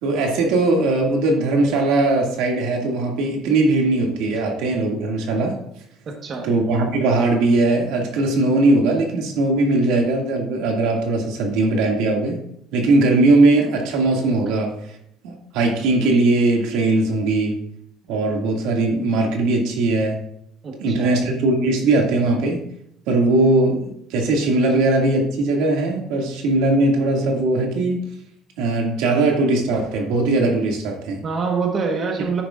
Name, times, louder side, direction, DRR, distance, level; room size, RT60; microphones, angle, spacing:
voice 1, 0.0-5.6 6.4-12.4 12.7-14.7 15.2-17.6 18.1-20.2 20.8-22.6 23.1-28.0 28.6-31.2 32.2-32.3, right 2 dB, 80° right, 1 dB, 2.2 m, -19 dB
voice 2, 20.6-21.2 31.2-32.4, right 5 dB, 35° right, 2 dB, 1.3 m, -25 dB
10.0 x 9.6 x 2.5 m, 0.72 s
cardioid pair, 155°, 0 cm